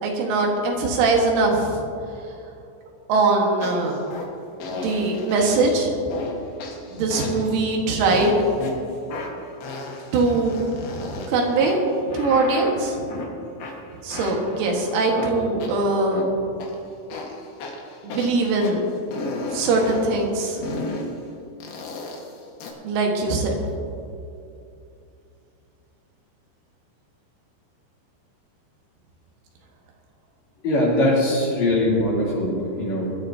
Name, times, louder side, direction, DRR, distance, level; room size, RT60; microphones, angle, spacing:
voice 1, 0.0-1.8 3.1-4.0 4.7-6.1 6.9-8.5 10.1-11.8 12.1-13.0 14.0-16.3 18.0-18.8 19.5-20.6 22.8-23.6, right 3 dB, 85° right, 0 dB, 4.2 m, -22 dB
sound 1, 3.6-4.3 4.6-5.7 6.1-6.4 6.6-7.6 8.1-8.7 9.1-11.3 11.6-13.3 13.6-16.3 16.6-16.7 17.1-18.7 19.1-20.1 20.6-21.1 21.6-22.7, left 3 dB, 65° left, 3.1 m, -33 dB
voice 2, 30.6-33.1, left 1 dB, 40° left, -7 dB, 3.9 m, -21 dB
22.5 x 12.0 x 2.8 m, 2.6 s
omnidirectional pair, 5.4 m